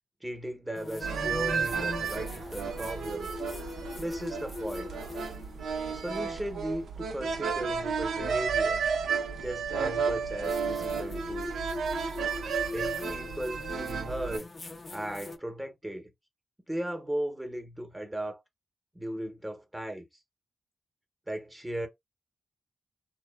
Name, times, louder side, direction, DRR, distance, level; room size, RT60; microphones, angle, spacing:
voice 1, 0.2-3.3 4.0-4.9 5.9-8.8 9.4-11.7 12.7-14.5 14.9-16.1 16.7-18.4 18.9-20.0 21.3-21.9, right 1 dB, 15° right, 0.8 m, -36 dB
sound 1, 0.7-6.2 8.3-8.4 10.4-15.4, left 2 dB, 40° left, 0.4 m, -40 dB
sound 2, 1.0-14.4, right 6 dB, 80° right, 0.5 m, -32 dB
2.6 x 2.2 x 2.2 m
supercardioid pair, 45°, 0 cm